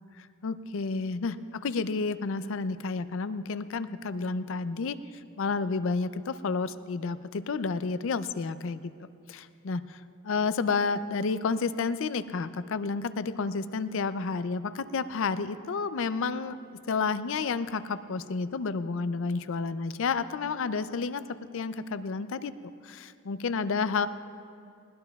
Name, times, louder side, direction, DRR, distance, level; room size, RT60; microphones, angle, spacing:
voice 1, 0.2-5.0 5.4-8.9 9.3-10.0 10.2-16.6 16.9-21.2 21.5-22.5 22.8-24.1, left 4 dB, 65° left, 13 dB, 0.5 m, -30 dB
20.5 x 18.5 x 2.3 m, 2.5 s
head